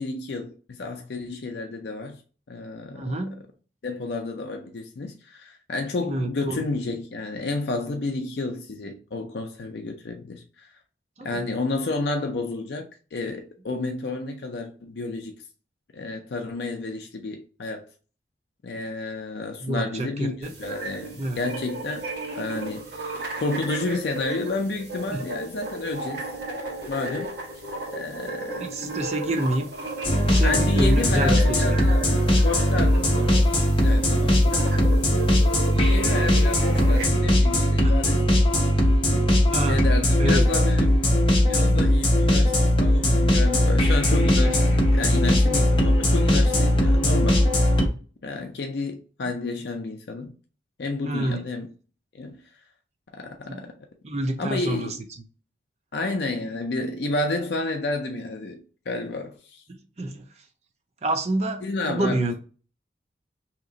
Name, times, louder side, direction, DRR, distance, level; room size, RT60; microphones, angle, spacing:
voice 1, 0.0-2.2 2.5-3.2 3.8-10.7 11.2-15.4 15.9-17.8 18.6-22.1 22.4-26.3 26.9-27.3 27.9-28.6 30.4-32.0 32.4-35.1 35.7-38.5 39.7-41.0 41.5-47.5 48.2-50.3 50.8-51.7 52.1-52.4 53.1-53.7 54.4-54.9 55.9-59.6 61.6-62.3, left 3 dB, 65° left, 0.4 m, -31 dB
voice 2, 2.9-3.4 6.0-6.6 11.2-11.4 19.6-20.5 21.2-21.4 25.1-25.2 28.6-29.7 30.3-31.8 37.8-38.0 38.7-38.9 39.5-39.8 40.2-40.4 41.6-41.8 51.0-51.4 53.5-53.6 54.0-55.0 60.0-60.3 61.0-62.3, right 1 dB, 35° right, 0.5 m, -28 dB
sound 1, 20.4-37.0, right 2 dB, 55° right, 1.1 m, -35 dB
sound 2, 30.0-47.9, left 1 dB, 30° left, 0.8 m, -19 dB
2.9 x 2.5 x 3.8 m
head